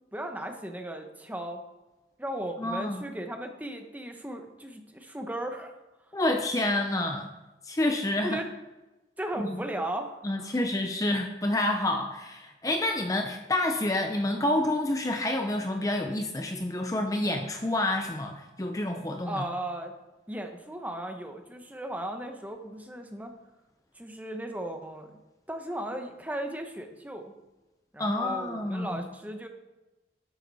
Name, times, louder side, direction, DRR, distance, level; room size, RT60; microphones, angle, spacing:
voice 1, 0.1-1.6 2.2-5.8 8.2-8.5 9.2-10.5 19.3-19.9 20.3-23.3 23.9-25.1 25.5-27.3 27.9-29.5, right 1 dB, 10° right, 5 dB, 0.9 m, -36 dB
voice 2, 2.6-3.0 6.1-7.3 7.6-8.4 9.4-9.6 10.2-19.5 28.0-29.1, left 1 dB, 20° left, 4 dB, 0.6 m, -28 dB
10.5 x 7.7 x 4.1 m, 1.1 s
head